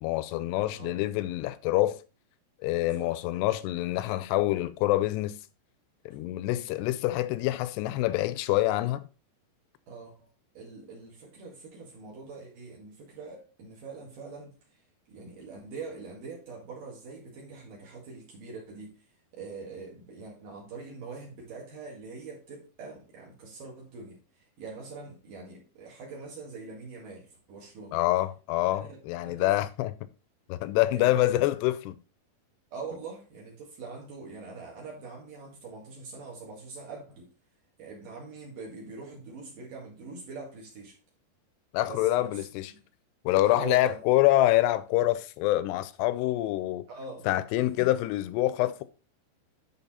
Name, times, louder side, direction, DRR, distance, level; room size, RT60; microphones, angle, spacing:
voice 1, 0.0-2.0 2.6-5.4 6.1-9.0 27.9-30.1 30.5-32.0 41.7-42.7 43.3-46.9 47.3-48.8, left 16 dB, 85° left, 2.6 m, -26 dB
voice 2, 9.9-10.3 10.5-14.8 15.1-19.0 19.3-28.0 29.2-29.5 30.9-31.5 32.7-37.3 37.8-41.0 41.9-42.5 42.7-42.8 43.5-44.0 46.9-47.3 47.6-47.9, right 4 dB, 55° right, 3.3 m, -43 dB
11.0 x 4.2 x 4.2 m
omnidirectional pair, 4.9 m